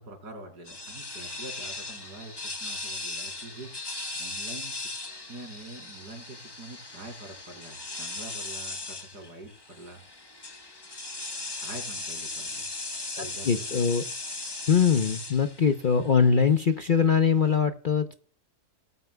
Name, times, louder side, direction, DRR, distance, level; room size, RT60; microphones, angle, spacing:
voice 1, 0.0-4.9 5.3-10.0 11.6-12.6 13.1-13.9, right 2 dB, 90° right, 3 dB, 4.2 m, -45 dB
sound 1, 0.7-17.5, left 2 dB, 20° left, 0.8 m, -38 dB
voice 2, 13.2-14.0 14.7-18.2, left 6 dB, 50° left, 7 dB, 0.6 m, -22 dB
19.5 x 9.2 x 2.2 m, 0.43 s
omnidirectional pair, 1.7 m